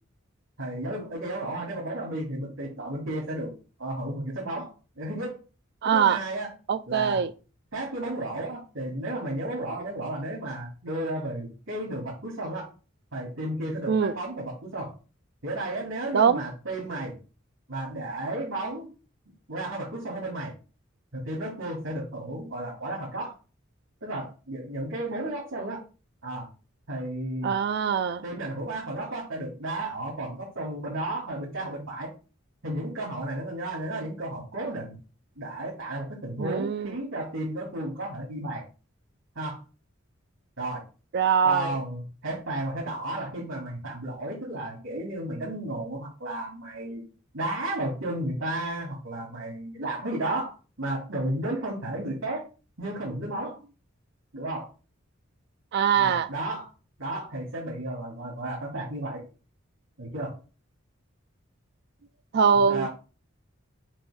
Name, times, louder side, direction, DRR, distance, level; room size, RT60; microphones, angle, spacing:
voice 1, 0.6-3.5 3.8-5.4 5.8-6.5 6.9-7.2 7.7-12.7 13.1-14.9 15.4-17.1 17.7-18.9 19.5-20.5 21.1-23.3 24.0-25.8 26.2-26.5 26.9-27.6 28.2-32.1 32.6-35.0 35.4-38.6 39.4-39.6 40.6-40.8 41.4-47.0 47.3-52.4 52.8-53.6 54.3-54.7 55.9-56.7 57.0-59.2 60.0-60.3 62.5-62.9, right 1 dB, 90° right, 2.6 m, -33 dB
voice 2, 5.8-6.2 6.7-7.3 13.9-14.2 16.1-16.4 27.4-28.2 36.4-37.0 41.1-41.8 55.7-56.3 62.3-62.9, right 7 dB, 60° right, 0.4 m, -23 dB
7.5 x 2.6 x 5.1 m
head